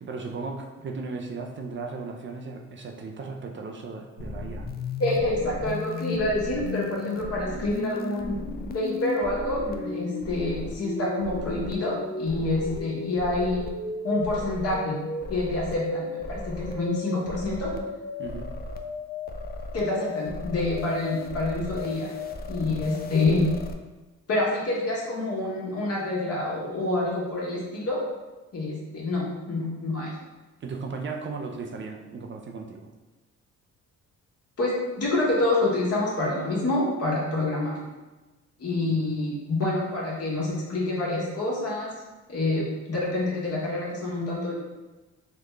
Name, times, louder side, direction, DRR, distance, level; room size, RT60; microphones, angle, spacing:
voice 1, 0.0-4.7 18.2-18.5 22.5-22.9 30.6-32.9 38.9-39.0, right 4 dB, 40° right, 2 dB, 0.5 m, -36 dB
sound 1, 4.2-23.7, left 3 dB, 35° left, 0.4 m, -35 dB
voice 2, 5.0-8.4 8.7-13.6 14.0-15.0 15.3-17.7 19.7-22.1 22.5-23.4 24.3-28.0 28.5-30.1 34.6-37.8 38.6-41.9 42.3-44.5, left 2 dB, 50° left, -5 dB, 1.4 m, -27 dB
3.8 x 2.4 x 3.2 m, 1.2 s
cardioid pair, 90°, 30 cm